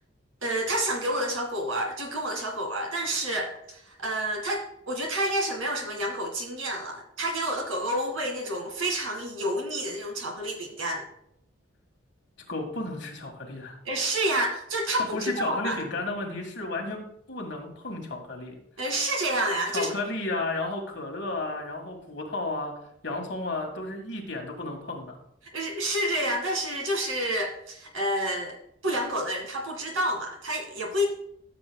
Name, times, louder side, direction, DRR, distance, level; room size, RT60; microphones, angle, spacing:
voice 1, 0.4-11.0 13.8-15.8 18.8-19.9 25.5-28.6 28.8-31.1, right 1 dB, 90° right, 3 dB, 2.1 m, -29 dB
voice 2, 12.5-13.8 15.0-17.0 17.3-18.6 19.7-22.7 23.0-25.2, left 2 dB, 60° left, 2 dB, 1.7 m, -33 dB
13.5 x 7.2 x 2.3 m, 0.73 s
head